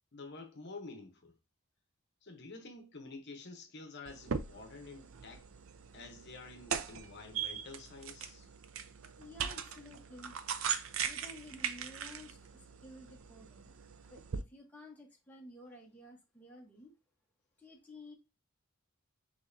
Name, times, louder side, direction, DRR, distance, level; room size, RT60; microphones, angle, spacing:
voice 1, 0.1-1.3 2.2-5.5 5.9-8.5, left 3 dB, 50° left, 0.8 m, -49 dB
sound 1, 4.1-14.4, right 7 dB, 70° right, 0.5 m, -40 dB
voice 2, 9.2-10.4 11.0-13.8 14.1-16.9 17.6-18.1, left 1 dB, 10° left, 1.0 m, -53 dB
6.2 x 3.1 x 2.6 m
head